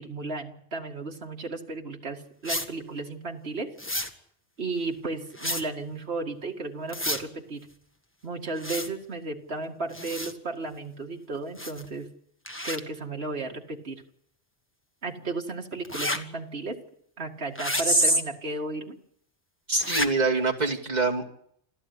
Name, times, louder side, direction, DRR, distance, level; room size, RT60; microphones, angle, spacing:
voice 1, 0.0-3.8 4.6-7.7 8.2-12.1 12.6-14.0 15.0-16.8 17.2-19.0, right 3 dB, 65° right, 2 dB, 2.4 m, -34 dB
sound 1, 2.4-2.7 3.8-4.1 5.4-5.6 6.9-7.2 8.6-8.9 9.9-10.3 11.6-11.9 12.5-12.8 15.8-16.2 17.6-17.8 19.8-20.1, left 1 dB, 10° left, 1.5 m, -31 dB
voice 2, 19.7-21.3, right 2 dB, 40° right, 0 dB, 2.6 m, -23 dB
27.5 x 14.0 x 9.8 m, 0.70 s
omnidirectional pair, 1.1 m